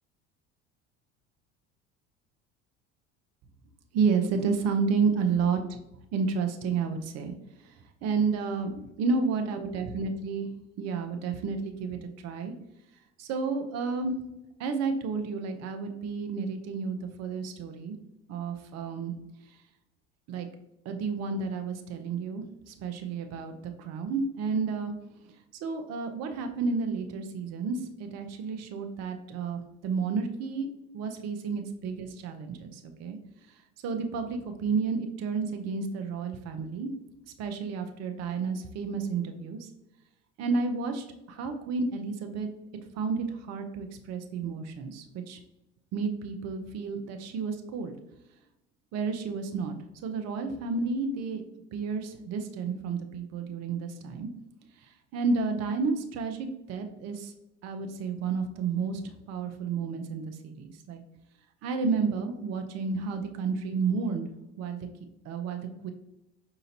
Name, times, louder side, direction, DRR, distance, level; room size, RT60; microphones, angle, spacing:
voice 1, 3.9-5.8 6.1-7.3 7.6-8.7 9.0-10.5 10.8-12.5 13.2-14.2 14.6-18.0 18.3-19.1 19.4-19.6 20.3-20.5 20.8-24.9 25.6-30.7 30.9-33.2 33.8-36.9 37.4-39.7 40.4-42.5 42.9-45.4 45.9-47.9 48.9-51.4 51.7-54.3 54.8-57.3 57.6-59.0 59.3-61.0 61.6-64.3 64.6-64.9 65.2-65.9, right 5 dB, 45° right, 6 dB, 0.6 m, -31 dB
5.0 x 2.8 x 2.8 m, 0.90 s
hypercardioid pair, 75°, 36 cm